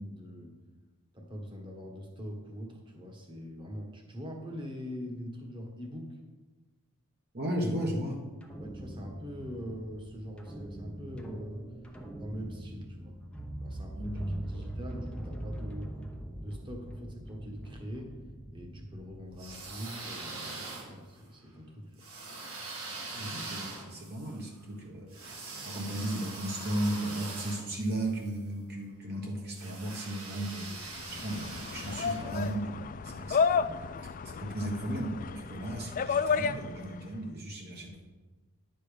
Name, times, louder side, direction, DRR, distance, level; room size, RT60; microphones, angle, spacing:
voice 1, 0.0-0.5 1.1-6.2 8.6-11.7 12.2-13.2 13.6-15.9 16.4-18.1 18.5-22.0, equal, 20° right, 1 dB, 1.5 m, -42 dB
voice 2, 7.3-8.2 13.9-14.3 14.5-14.6 23.1-32.7 33.0-38.0, right 1 dB, 45° right, -1 dB, 1.4 m, -35 dB
sound 1, 8.4-19.7, right 1 dB, 5° left, 0.9 m, -42 dB
sound 2, 19.3-21.2 22.0-28.4 29.5-32.5, right 3 dB, 65° right, 2.1 m, -43 dB
sound 3, 30.7-37.0, left 5 dB, 35° left, 0.3 m, -32 dB
10.5 x 6.9 x 5.2 m, 1.3 s
head